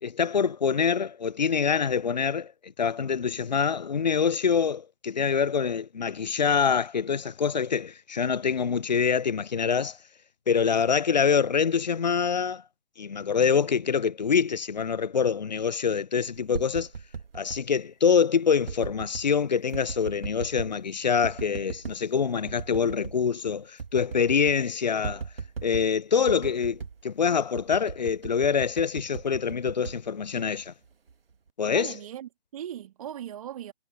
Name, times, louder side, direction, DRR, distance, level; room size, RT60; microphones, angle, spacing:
voice 1, 0.0-10.0 10.5-12.6 13.0-16.9 17.3-25.2 25.6-30.7 31.6-31.9, left 6 dB, 40° left, 0.4 m, -25 dB
sound 1, 16.3-17.6 18.6-19.3 19.7-20.8 21.2-22.0 22.5-23.2 23.5-23.6 23.8-24.6 25.0-25.9 26.3-27.0 27.5-30.7 31.1-31.5, right 5 dB, 55° right, 1.3 m, -38 dB
voice 2, 31.7-33.7, right 10 dB, 30° right, 2.1 m, -38 dB
figure-of-eight pair, 140°, 33 cm